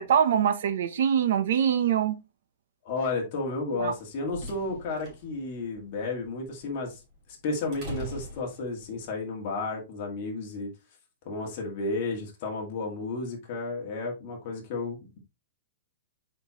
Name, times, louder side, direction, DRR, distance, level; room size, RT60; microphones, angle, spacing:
voice 1, 0.0-2.2 3.8-3.9, right 8 dB, 60° right, 0.8 m, -24 dB
voice 2, 2.8-7.0 7.4-10.7 11.3-15.2, left 3 dB, 35° left, 2.1 m, -32 dB
sound 1, 4.0-9.1, equal, 25° right, 3.0 m, -43 dB
7.3 x 4.4 x 3.0 m
supercardioid pair, 175°, 0 cm